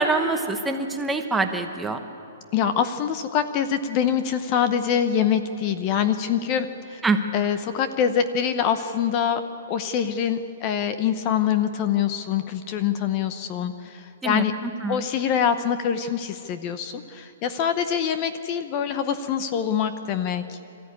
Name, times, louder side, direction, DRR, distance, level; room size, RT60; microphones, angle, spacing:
voice 1, 0.0-2.0 7.0-7.2 14.2-15.0, right 3 dB, 5° right, 5 dB, 1.0 m, -25 dB
voice 2, 2.5-7.0 7.3-9.4 9.7-14.5 14.9-20.6, left 8 dB, 25° left, 10 dB, 0.8 m, -24 dB
26.0 x 14.0 x 9.7 m, 2.6 s
hypercardioid pair, 165°, 0 cm